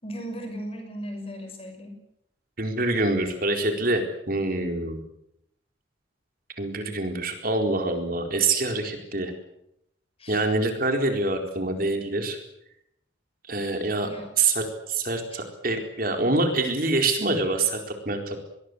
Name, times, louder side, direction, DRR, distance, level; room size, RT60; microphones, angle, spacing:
voice 1, 0.0-2.0 10.2-10.4 14.0-14.3 15.3-15.4, equal, 30° left, 6 dB, 6.7 m, -37 dB
voice 2, 2.6-5.0 6.6-9.3 10.3-12.4 13.5-18.4, right 2 dB, 45° right, 4 dB, 4.3 m, -25 dB
26.0 x 21.5 x 8.1 m, 0.79 s
head